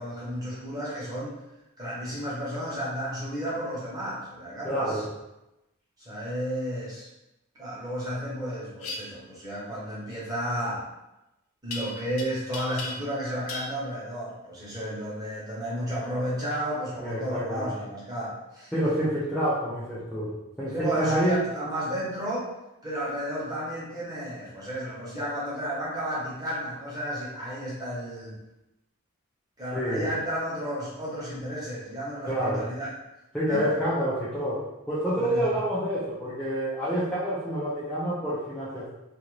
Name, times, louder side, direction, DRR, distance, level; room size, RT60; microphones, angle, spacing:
voice 1, 0.0-1.3 1.8-5.0 6.0-7.1 7.6-10.8 11.6-18.9 20.7-22.5 22.8-28.4 29.6-32.9 33.5-33.7 35.2-35.4, equal, 15° right, -7 dB, 1.0 m, -32 dB
voice 2, 4.6-5.1 17.0-17.7 18.7-21.4 29.7-30.1 32.3-32.6 33.3-38.9, equal, 5° left, -10 dB, 0.4 m, -28 dB
sound 1, 8.8-9.0 11.7-12.2 12.5-13.2 13.5-13.7, left 3 dB, 75° left, 0.5 m, -36 dB
2.8 x 2.5 x 3.1 m, 0.94 s
head